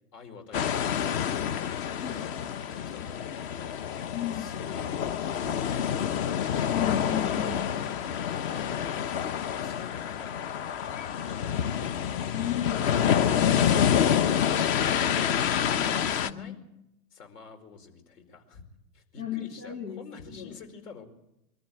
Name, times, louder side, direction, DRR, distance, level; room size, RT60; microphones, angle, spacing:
voice 1, 0.1-2.3 2.6-4.9 5.4-6.5 8.0-8.9 9.6-10.5 10.7-11.9 15.7-16.6 17.1-18.7 18.9-21.0, left 5 dB, 70° left, 5 dB, 4.9 m, -49 dB
sound 1, 0.5-16.3, left 8 dB, 40° left, 1.0 m, -27 dB
voice 2, 1.9-2.3 4.1-4.5 6.7-7.7 12.3-14.2 15.8-16.6 19.2-20.0 20.3-20.5, left 9 dB, 90° left, 3 dB, 2.4 m, -35 dB
23.0 x 14.5 x 9.5 m, 0.86 s
hypercardioid pair, 120°, 48 cm